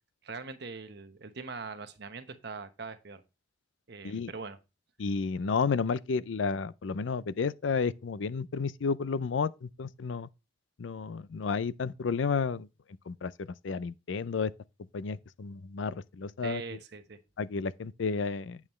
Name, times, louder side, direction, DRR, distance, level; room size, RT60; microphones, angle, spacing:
voice 1, 0.2-3.2 3.9-4.6 16.4-17.2, right 4 dB, 65° right, 1.1 m, -42 dB
voice 2, 5.0-10.3 10.8-12.7 13.1-13.3 13.6-14.5 14.9-16.6 17.4-18.6, left 5 dB, 85° left, 0.5 m, -31 dB
8.7 x 7.2 x 3.1 m
head